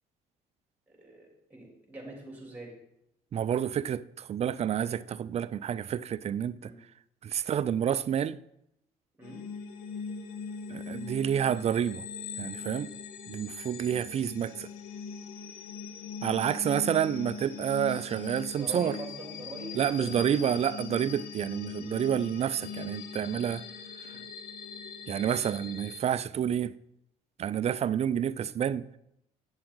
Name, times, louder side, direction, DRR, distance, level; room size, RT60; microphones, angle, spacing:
voice 1, 0.9-2.7 6.6-6.8 9.2-9.4 18.6-20.7 24.0-24.2, right 2 dB, 10° right, 3.5 m, -44 dB
voice 2, 3.3-6.7 7.2-8.4 10.7-12.0 12.4-12.9 13.3-14.7 16.2-19.0 19.8-23.6 24.0-24.1 25.1-26.7 27.4-28.8, right 9 dB, 40° right, 0.4 m, -29 dB
sound 1, 9.2-26.0, left 5 dB, 70° left, 1.0 m, -41 dB
8.7 x 6.8 x 3.8 m
supercardioid pair, 70°, 16 cm